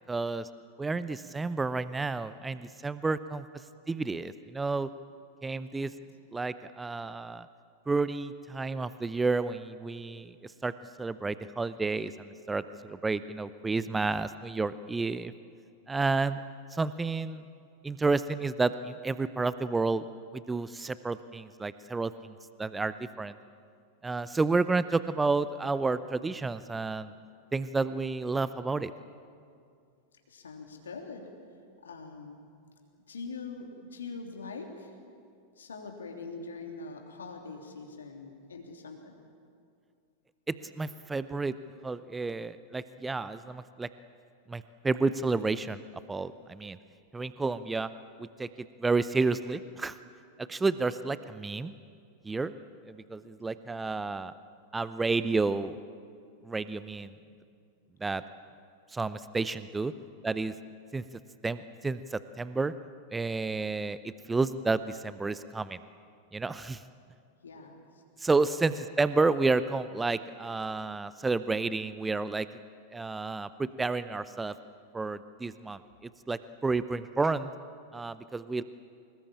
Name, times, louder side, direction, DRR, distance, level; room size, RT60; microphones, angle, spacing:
voice 1, 0.1-0.5 0.8-3.4 3.9-4.9 5.4-5.9 6.3-7.5 7.9-10.7 11.0-15.3 15.9-16.4 16.7-17.4 17.8-20.1 20.3-23.3 24.0-27.1 27.5-28.9 40.5-41.5 41.8-43.9 44.5-45.8 46.1-46.8 47.1-47.9 48.2-48.5 48.8-49.9 50.5-51.7 52.2-52.5 52.9-54.3 54.7-55.8 56.4-57.1 58.0-58.2 58.9-59.9 60.2-60.5 60.9-61.0 61.4-62.7 63.1-65.8 66.3-66.8 68.2-72.5 72.9-74.5 74.9-77.5 77.9-78.6, right 3 dB, 10° right, 14 dB, 0.7 m, -30 dB
voice 2, 30.3-31.3 31.8-32.4 33.1-34.9 35.6-39.1 57.1-57.2 67.4-67.8 68.4-68.5, left 4 dB, 70° left, 2 dB, 3.2 m, -43 dB
24.5 x 21.0 x 8.8 m, 2.3 s
figure-of-eight pair, 90°, 0 cm